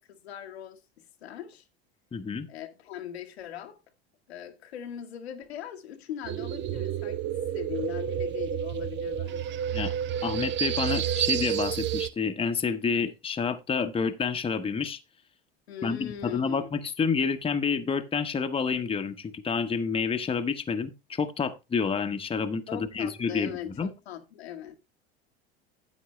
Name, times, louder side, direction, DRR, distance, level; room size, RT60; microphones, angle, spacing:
voice 1, 0.0-1.6 2.5-3.8 4.3-9.6 15.7-16.6 22.7-24.7, left 10 dB, 85° left, 1.3 m, -40 dB
voice 2, 2.1-2.5 9.7-9.9 10.2-15.0 15.8-23.5 23.8-23.9, left 5 dB, 20° left, 0.9 m, -29 dB
sound 1, 6.2-12.1, right 9 dB, 35° right, 0.6 m, -30 dB
9.5 x 8.4 x 3.1 m
hypercardioid pair, 85°, 31 cm